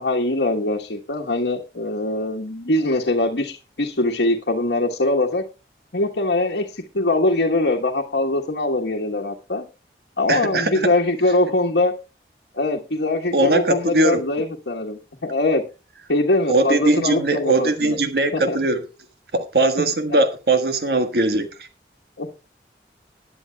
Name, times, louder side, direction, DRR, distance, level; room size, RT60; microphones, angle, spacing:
voice 1, 0.0-5.4 5.9-9.6 10.2-11.9 12.5-15.6 16.1-18.0 18.5-18.6 20.1-20.2 22.2-22.3, left 2 dB, 85° left, 1.4 m, -22 dB
voice 2, 10.3-10.9 13.3-14.2 16.5-18.8 19.3-21.5, right 2 dB, 65° right, 1.5 m, -20 dB
20.0 x 9.9 x 2.3 m
head